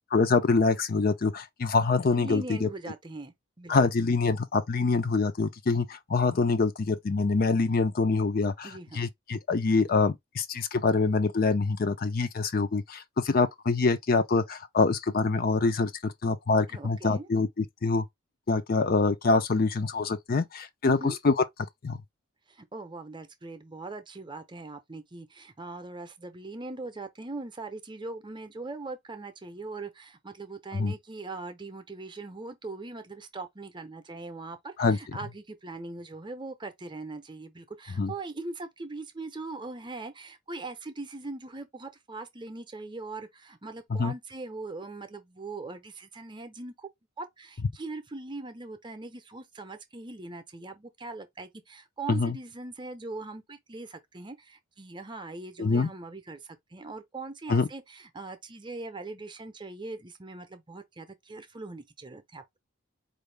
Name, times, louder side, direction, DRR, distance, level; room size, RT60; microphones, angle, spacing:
voice 1, 0.1-2.7 3.7-8.7 8.9-18.0 18.5-21.3 21.8-22.0 30.7-30.9 34.8-35.0 38.0-38.1 43.9-44.1 52.1-52.3 55.6-55.9 57.5-57.7, left 3 dB, 45° left, 0.5 m, -25 dB
voice 2, 2.1-3.9 8.6-9.0 16.7-17.3 20.8-21.2 22.5-46.9 47.2-62.6, right 3 dB, 20° right, 0.7 m, -41 dB
4.6 x 2.6 x 3.3 m
head